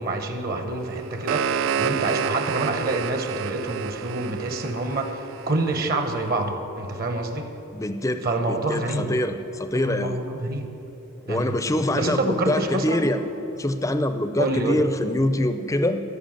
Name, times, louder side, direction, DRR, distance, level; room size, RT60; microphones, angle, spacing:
voice 1, 0.0-7.5 8.2-9.1 9.7-10.8 11.3-11.6 12.0-13.1 14.4-14.8, right 2 dB, 40° right, 6 dB, 0.9 m, -27 dB
sound 1, 0.9-5.9, right 7 dB, 60° right, 0.3 m, -29 dB
voice 2, 7.7-10.2 11.3-13.2 13.6-16.0, left 1 dB, 15° left, 9 dB, 0.5 m, -25 dB
14.5 x 5.9 x 8.8 m, 3.0 s
head